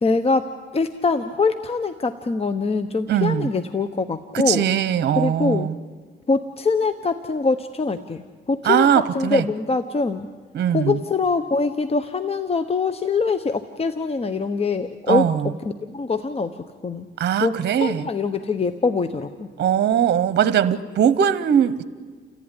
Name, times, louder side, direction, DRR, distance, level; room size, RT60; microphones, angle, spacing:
voice 1, 0.0-4.7 5.1-5.7 6.3-8.2 8.5-10.3 10.7-15.3 15.9-16.6 16.8-17.1 17.4-19.5, left 4 dB, 30° left, 9 dB, 1.1 m, -23 dB
voice 2, 3.1-3.5 4.3-5.8 8.6-9.4 10.5-11.0 15.1-15.5 17.2-18.0 19.6-21.8, right 9 dB, 60° right, 14 dB, 1.0 m, -20 dB
30.0 x 14.5 x 10.0 m, 1.5 s
cardioid pair, 90°, 20 cm